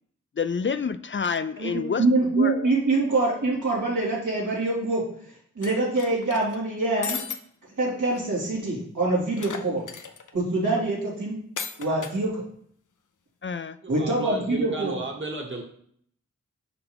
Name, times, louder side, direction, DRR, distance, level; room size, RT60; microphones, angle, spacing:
voice 1, 0.4-2.0 2.4-2.7 13.4-13.8, left 6 dB, 40° left, 12 dB, 0.4 m, -28 dB
voice 2, 1.6-5.0 5.6-7.2 7.8-9.9 10.3-11.4 11.8-12.4 13.9-15.0, right 2 dB, 85° right, -6 dB, 3.0 m, -25 dB
sound 1, 5.6-6.6 7.0-7.4 7.8-7.9 8.1-8.2 9.4-10.3 11.6-12.2, left 6 dB, 90° left, 0.6 m, -35 dB
voice 3, 13.8-15.6, right 3 dB, 40° right, 1 dB, 1.4 m, -33 dB
5.8 x 5.7 x 3.5 m, 0.63 s
cardioid pair, 45°, 30 cm